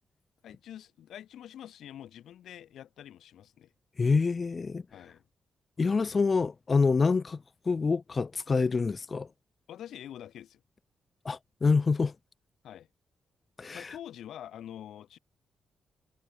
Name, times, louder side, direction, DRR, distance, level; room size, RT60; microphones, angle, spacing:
voice 1, 0.4-3.7 4.9-5.2 9.7-10.6 12.6-12.9 13.7-15.2, left 11 dB, 85° left, 3.4 m, -46 dB
voice 2, 4.0-4.8 5.8-9.3 11.2-12.1 13.6-13.9, left 4 dB, 35° left, 0.7 m, -26 dB
cardioid pair, 90°, 0 cm